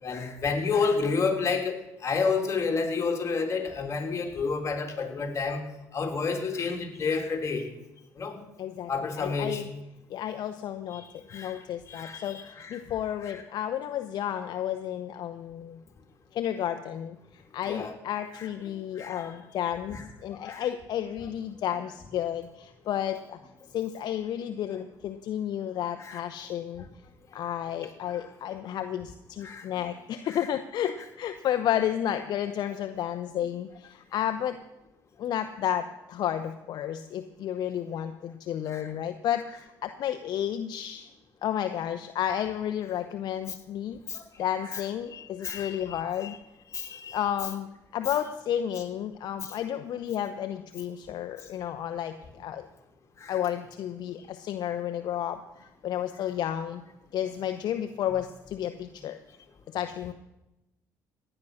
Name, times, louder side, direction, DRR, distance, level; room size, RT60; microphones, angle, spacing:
voice 1, 0.0-5.6 5.9-7.7 8.2-8.4 8.9-9.6 10.9-11.0 11.3-11.6 11.9-12.8 13.2-13.4 17.7-17.9 18.4-18.5 19.0-19.3 19.9-20.0 20.4-20.7 26.0-26.2 28.1-28.2 29.4-29.7 30.3-30.5 38.7-38.9 44.1-44.2 44.7-44.8 45.1-46.4 46.7-47.2 49.4-49.5 53.2-53.4, left 4 dB, 40° left, 2 dB, 3.0 m, -30 dB
voice 2, 8.6-8.9 9.2-9.7 10.1-11.0 11.3-15.8 16.3-23.4 23.7-26.8 27.3-34.6 35.2-41.1 41.4-44.0 44.4-46.3 47.1-47.7 47.9-52.7 53.3-55.4 55.8-56.8 57.1-59.2 59.7-60.1, left 10 dB, 65° left, 8 dB, 0.8 m, -32 dB
16.0 x 10.0 x 6.4 m, 0.95 s
supercardioid pair, 85°, 8 cm